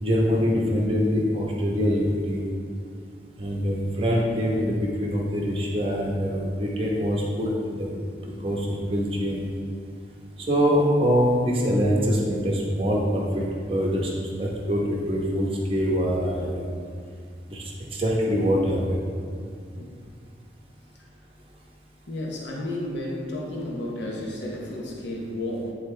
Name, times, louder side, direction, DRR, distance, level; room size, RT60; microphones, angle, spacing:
voice 1, 0.0-2.4 3.4-7.9 8.4-9.5 10.5-13.4 13.7-14.1 14.4-16.6 17.5-19.0, equal, 30° right, -3 dB, 0.9 m, -24 dB
voice 2, 22.1-25.7, left 1 dB, 75° left, -2 dB, 0.8 m, -32 dB
9.8 x 4.1 x 3.2 m, 2.3 s
head